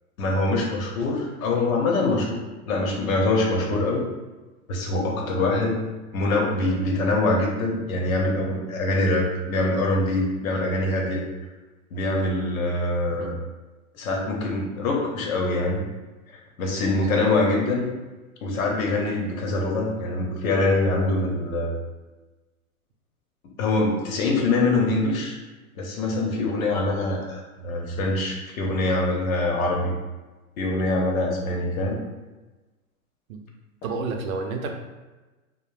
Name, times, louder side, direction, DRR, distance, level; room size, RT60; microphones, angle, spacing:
voice 1, 0.2-2.4 2.7-4.0 4.7-5.8 6.1-11.2 11.9-13.4 13.9-15.8 16.6-17.9 18.4-21.8 23.6-25.4 25.7-29.9 30.6-32.0, left 2 dB, 65° left, 0 dB, 0.8 m, -24 dB
voice 2, 33.8-34.7, right 4 dB, 70° right, 4 dB, 0.6 m, -30 dB
2.4 x 2.1 x 3.2 m, 1.2 s
hypercardioid pair, 140°, 44 cm